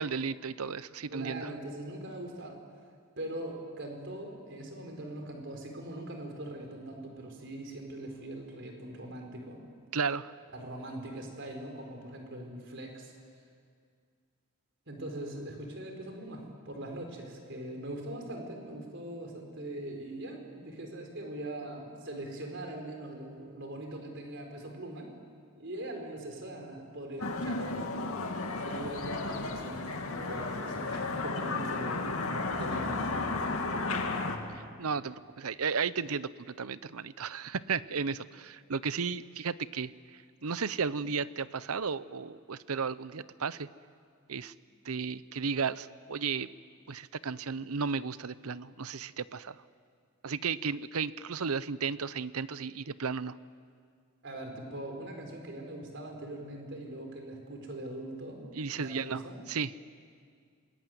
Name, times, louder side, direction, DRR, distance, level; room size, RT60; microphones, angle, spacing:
voice 1, 0.0-1.5 9.9-10.3 34.8-39.9 40.4-43.7 44.3-44.5 44.8-46.5 46.9-49.6 50.2-53.3 58.5-59.2 59.5-59.7, right 5 dB, 80° right, 16 dB, 0.8 m, -34 dB
voice 2, 1.1-2.6 3.2-9.6 10.5-13.1 14.9-25.1 25.6-27.8 28.6-32.1 32.5-33.1 54.2-58.5 58.7-59.4, right 1 dB, 55° right, 3 dB, 4.7 m, -41 dB
sound 1, 27.2-34.4, left 3 dB, 75° left, 2.3 m, -33 dB
27.5 x 21.0 x 9.4 m, 2.2 s
head